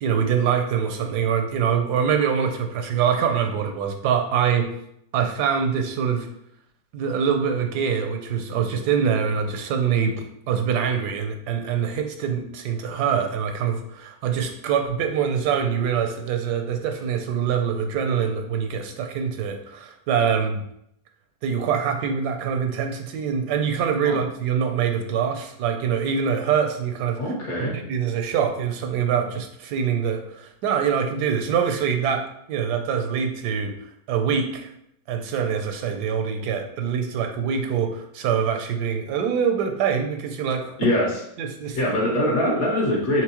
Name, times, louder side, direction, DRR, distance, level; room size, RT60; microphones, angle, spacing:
voice 1, 0.0-4.7 5.1-6.3 6.9-10.2 10.5-20.6 21.4-27.2 27.6-33.7 34.1-34.7 35.1-40.7 41.4-41.9, right 7 dB, 90° right, 5 dB, 1.2 m, -24 dB
voice 2, 27.2-27.8 40.8-41.1 41.7-43.2, left 1 dB, 65° left, -3 dB, 1.7 m, -22 dB
4.6 x 3.6 x 3.0 m, 0.74 s
omnidirectional pair, 1.7 m